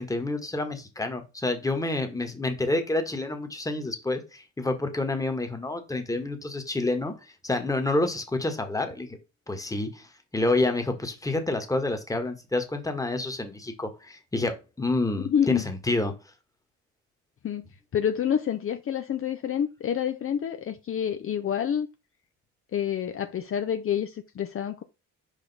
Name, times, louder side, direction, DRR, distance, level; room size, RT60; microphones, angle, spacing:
voice 1, 0.0-7.1 7.4-9.2 9.5-10.1 10.3-16.1, left 2 dB, 10° left, 1.4 m, -28 dB
voice 2, 15.2-15.7 17.4-17.6 17.9-21.9 22.7-24.8, left 9 dB, 45° left, 0.7 m, -28 dB
5.0 x 5.0 x 4.1 m
cardioid pair, 90°, 30 cm